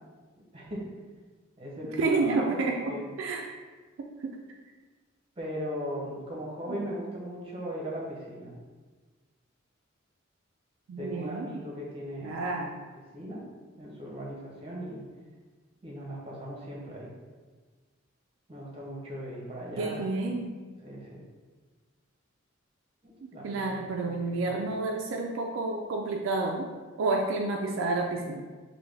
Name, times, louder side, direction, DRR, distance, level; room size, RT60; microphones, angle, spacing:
voice 1, 0.5-0.9 1.6-2.6 2.9-3.1 5.4-8.5 11.0-12.4 12.9-13.5 13.8-15.0 15.8-17.1 18.5-20.0 20.8-21.2 23.0-24.5, equal, 30° right, -4 dB, 0.8 m, -38 dB
voice 2, 2.0-3.5 4.0-4.4 6.7-6.9 10.9-11.5 12.2-12.7 19.8-20.6 23.2-26.7 27.0-28.5, right 3 dB, 70° right, 1 dB, 0.3 m, -30 dB
3.4 x 2.2 x 3.2 m, 1.4 s
head